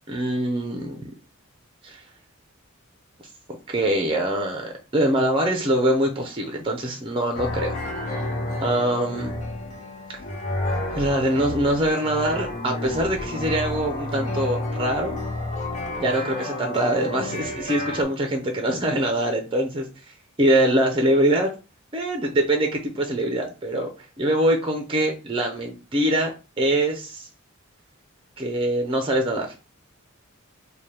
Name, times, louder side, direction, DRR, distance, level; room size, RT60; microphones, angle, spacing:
voice 1, 0.1-1.1 1.8-2.0 3.7-7.8 8.6-9.3 10.9-15.2 16.0-21.5 21.9-23.9 24.2-27.3 28.4-29.5, right 1 dB, 25° right, 3 dB, 0.5 m, -23 dB
sound 1, 7.3-18.0, left 2 dB, 35° left, 0.9 m, -30 dB
3.3 x 2.2 x 4.2 m, 0.32 s
head